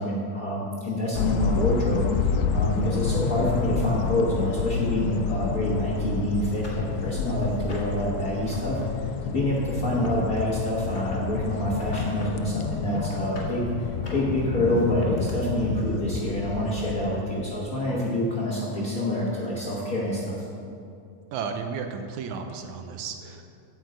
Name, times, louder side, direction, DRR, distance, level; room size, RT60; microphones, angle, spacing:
voice 1, 0.0-20.4, left 1 dB, 55° left, -5 dB, 1.0 m, -27 dB
sound 1, 1.2-17.2, left 6 dB, 80° left, 1.8 m, -29 dB
sound 2, 5.9-6.0 6.5-8.0 8.4-8.8 9.1-11.2 11.7-12.3 12.7-13.5 13.9-15.3 16.3-16.4 16.8-16.9, left 2 dB, 30° left, 1.4 m, -43 dB
voice 2, 21.3-23.5, right 5 dB, 80° right, 6 dB, 2.0 m, -33 dB
8.8 x 6.4 x 7.9 m, 2.5 s
omnidirectional pair, 3.5 m